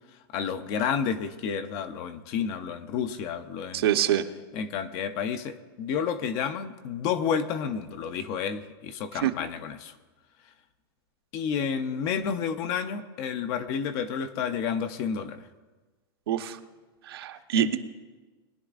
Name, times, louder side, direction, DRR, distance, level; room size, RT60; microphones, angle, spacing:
voice 1, 0.3-3.9 4.5-9.9 11.3-15.4 17.5-17.8, left 7 dB, 30° left, 11 dB, 0.5 m, -30 dB
voice 2, 3.7-4.2 9.2-9.3 16.3-16.6 17.1-17.8, right 11 dB, 75° right, 7 dB, 0.9 m, -25 dB
20.5 x 10.5 x 2.4 m, 1.3 s
supercardioid pair, 175°, 13 cm